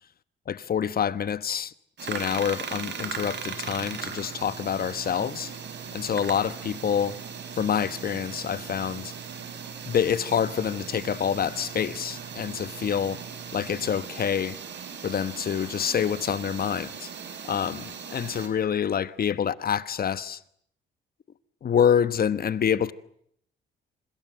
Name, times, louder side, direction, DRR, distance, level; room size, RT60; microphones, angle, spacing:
voice 1, 0.5-1.7 2.0-5.5 5.9-7.2 7.6-9.1 9.9-13.2 13.5-14.6 15.0-17.1 17.5-20.4 21.6-22.9, left 8 dB, 50° left, 1.2 m, -27 dB
sound 1, 2.0-18.5, right 6 dB, 60° right, 5.1 m, -39 dB
sound 2, 3.2-14.0, right 8 dB, 80° right, 4.8 m, -47 dB
26.5 x 25.5 x 7.7 m
cardioid pair, 90°, 20 cm